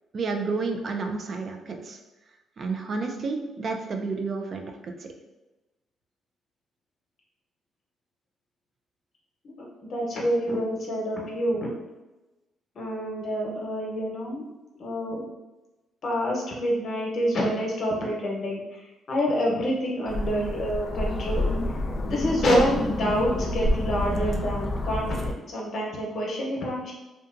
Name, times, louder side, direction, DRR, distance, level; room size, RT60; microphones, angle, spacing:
voice 1, 0.1-2.0 2.6-5.1, right 4 dB, 50° right, 4 dB, 0.3 m, -30 dB
voice 2, 9.4-11.7 12.7-14.4 14.8-15.2 16.0-21.5 22.1-26.9, equal, 55° left, -2 dB, 0.8 m, -27 dB
sound 1, 20.1-25.3, left 1 dB, 35° left, 0.3 m, -28 dB
2.8 x 2.3 x 2.5 m, 1.1 s
cardioid pair, 90°, 0 cm